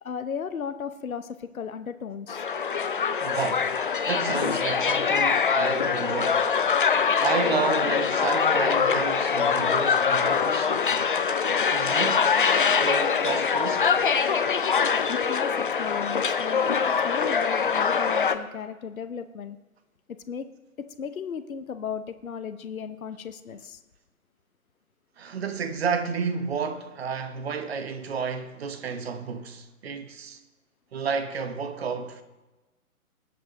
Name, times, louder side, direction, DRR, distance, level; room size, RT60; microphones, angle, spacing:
voice 1, 0.0-2.4 15.1-19.6 20.3-20.5 21.0-23.8, left 7 dB, 65° left, 0.9 m, -35 dB
sound 1, 2.3-18.4, left 6 dB, 40° left, 0.5 m, -23 dB
voice 2, 3.2-3.7 4.0-6.4 7.2-11.0 11.7-12.3 12.8-13.9 25.2-30.4 30.9-32.2, right 6 dB, 45° right, 1.2 m, -31 dB
19.0 x 8.2 x 3.0 m
figure-of-eight pair, 130°, 44 cm